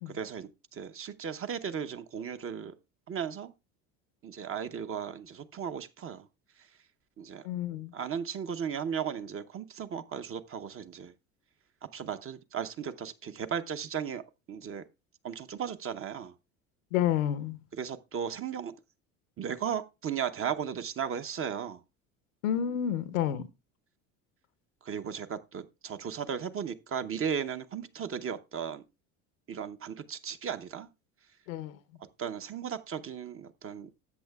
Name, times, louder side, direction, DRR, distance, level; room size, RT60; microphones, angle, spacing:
voice 1, 0.1-2.7 3.1-3.5 4.2-6.3 7.2-7.4 7.9-11.1 11.9-14.2 14.5-14.8 15.2-16.3 17.8-18.7 19.4-21.8 24.8-28.8 29.5-30.9 32.2-34.0, right 7 dB, 35° right, 0.8 m, -36 dB
voice 2, 7.4-7.9 16.9-17.6 22.4-23.5 31.5-31.8, left 10 dB, 85° left, 0.8 m, -30 dB
13.0 x 8.0 x 2.3 m
hypercardioid pair, 75°, 39 cm